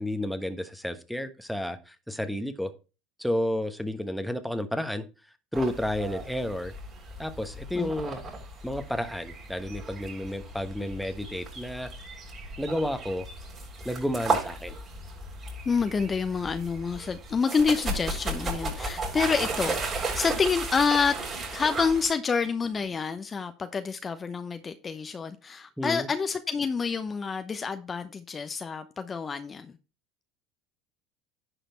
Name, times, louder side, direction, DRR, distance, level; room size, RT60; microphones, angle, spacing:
voice 1, 0.0-2.7 3.2-5.0 5.5-6.7 7.2-8.2 8.6-11.9 12.6-13.3 13.8-14.7 25.8-26.1, left 1 dB, ahead, 1.2 m, -31 dB
sound 1, 5.5-22.1, right 3 dB, 35° right, 5.8 m, -35 dB
voice 2, 15.7-21.2 21.5-29.7, left 5 dB, 30° left, 0.8 m, -28 dB
10.5 x 5.0 x 4.4 m
hypercardioid pair, 75°, 0 cm